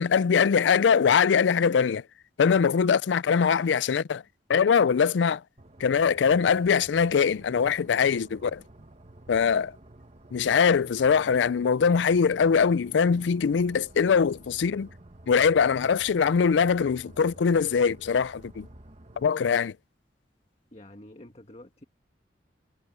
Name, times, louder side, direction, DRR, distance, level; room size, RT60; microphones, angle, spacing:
voice 1, 0.0-2.0 2.4-4.2 4.5-5.4 5.8-8.6 9.3-9.7 10.3-14.9 15.3-18.7 19.2-19.7, left 6 dB, 85° left, 0.4 m, -22 dB
sound 1, 5.6-19.3, right 1 dB, 35° right, 1.4 m, -51 dB
voice 2, 20.7-21.8, left 1 dB, 35° left, 1.6 m, -48 dB
head